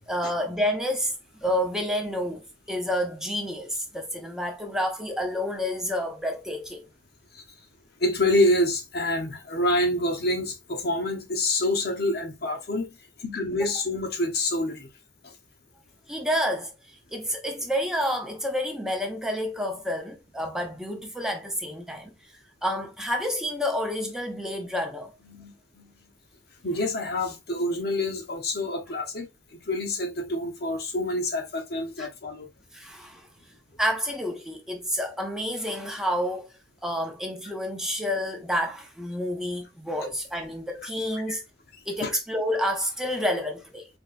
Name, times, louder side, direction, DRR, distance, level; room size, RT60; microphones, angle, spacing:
voice 1, 0.1-1.1 1.4-2.4 2.7-6.8 16.1-16.7 17.1-22.1 22.6-25.1 32.0-32.1 32.7-33.3 33.8-36.5 36.8-41.4 41.9-43.9, equal, 5° right, 0.7 m, -29 dB
voice 2, 8.0-12.9 13.2-14.9 15.2-15.3 25.3-25.9 26.6-29.3 29.7-32.5 41.3-41.4 42.0-42.1, left 1 dB, 60° left, 0.9 m, -27 dB
4.4 x 3.0 x 2.4 m
head